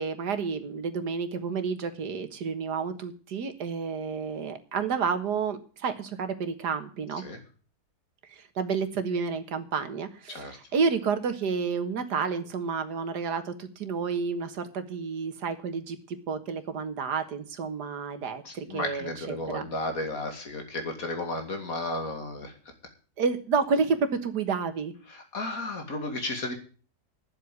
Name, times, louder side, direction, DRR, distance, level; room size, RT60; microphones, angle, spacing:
voice 1, 0.0-7.2 8.3-19.7 23.2-24.9, right 5 dB, 85° right, 9 dB, 2.0 m, -30 dB
voice 2, 18.4-22.5 25.1-26.5, left 2 dB, 60° left, 5 dB, 2.9 m, -33 dB
10.0 x 7.9 x 9.3 m, 0.40 s
omnidirectional pair, 1.7 m